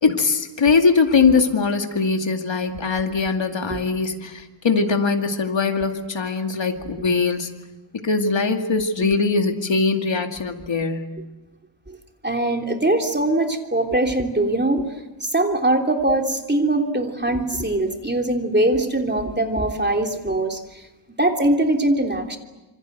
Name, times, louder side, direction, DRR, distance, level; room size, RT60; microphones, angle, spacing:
voice 1, 0.0-7.5 8.0-11.2, left 4 dB, 70° left, 4 dB, 2.4 m, -21 dB
voice 2, 12.2-14.8 15.2-20.6 21.2-22.4, right 1 dB, 20° right, 3 dB, 3.2 m, -21 dB
27.0 x 25.5 x 8.0 m, 1.1 s
wide cardioid pair, 80°, 46 cm